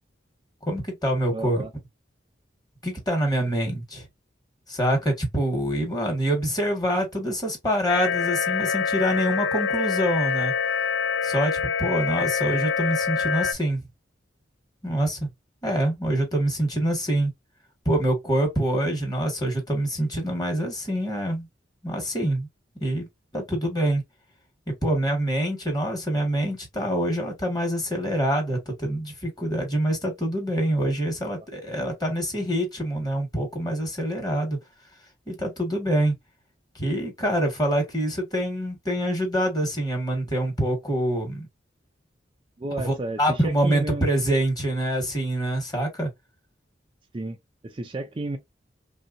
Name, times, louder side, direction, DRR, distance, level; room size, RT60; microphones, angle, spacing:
voice 1, 0.6-1.7 2.8-4.1 4.7-10.5 11.2-13.9 14.8-15.3 15.6-17.3 17.9-21.5 21.8-22.5 22.8-23.1 23.3-24.0 24.7-34.6 35.3-36.2 36.8-41.5 42.8-46.1, right 1 dB, 20° left, 1.6 m, -25 dB
voice 2, 1.3-1.7 31.2-31.3 42.6-44.1 47.1-47.4 47.6-48.4, right 2 dB, 30° right, 0.4 m, -32 dB
sound 1, 7.9-13.5, left 6 dB, 75° left, 0.5 m, -25 dB
3.3 x 2.7 x 2.6 m
head